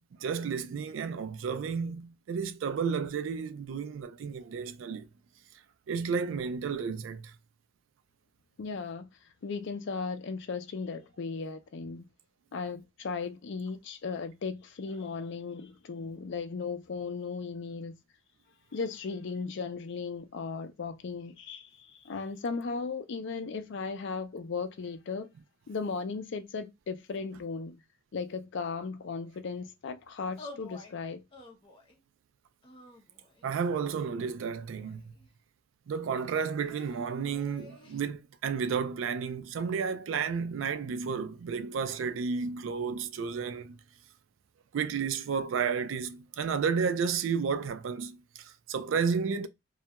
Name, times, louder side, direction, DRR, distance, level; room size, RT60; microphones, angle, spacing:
voice 1, 0.0-5.1 5.9-7.3 33.4-35.0 35.9-43.8 44.7-49.5, right 6 dB, 70° right, 0.3 m, -32 dB
voice 2, 8.6-9.1 9.4-12.1 12.5-17.9 18.7-25.3 25.7-27.8 28.1-31.2, left 4 dB, 65° left, 0.4 m, -36 dB
sound 1, 30.4-30.9 31.3-32.0 32.6-33.5 34.3-35.3 36.6-38.0, left 2 dB, 25° left, 0.6 m, -50 dB
2.3 x 2.2 x 2.8 m
head